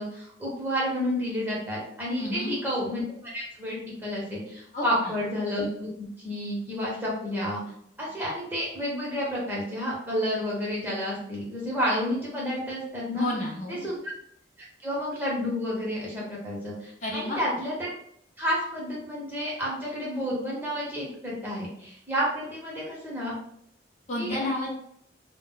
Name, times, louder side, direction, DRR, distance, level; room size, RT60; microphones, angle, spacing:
voice 1, 0.0-3.0 3.3-7.6 8.0-13.2 13.7-14.0 14.6-17.9 18.4-23.3 24.2-24.4, equal, 10° right, -5 dB, 0.8 m, -30 dB
voice 2, 2.2-2.5 4.7-5.1 13.1-13.8 17.0-17.4 24.1-24.8, left 1 dB, 40° left, -3 dB, 0.6 m, -31 dB
2.3 x 2.1 x 3.7 m, 0.70 s
head